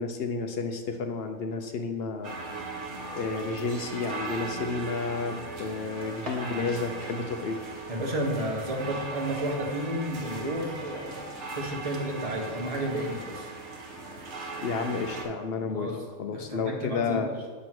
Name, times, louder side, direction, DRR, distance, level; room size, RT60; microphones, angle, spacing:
voice 1, 0.0-2.3 3.1-7.6 14.6-15.9 16.2-17.3, left 4 dB, 65° left, 5 dB, 0.6 m, -31 dB
sound 1, 2.2-15.3, right 3 dB, 60° right, 1.2 m, -38 dB
voice 2, 7.9-11.3 11.6-13.5 15.7-16.0 16.3-17.3, right 1 dB, 30° right, -1 dB, 1.0 m, -32 dB
7.7 x 3.1 x 5.9 m, 1.4 s
omnidirectional pair, 1.5 m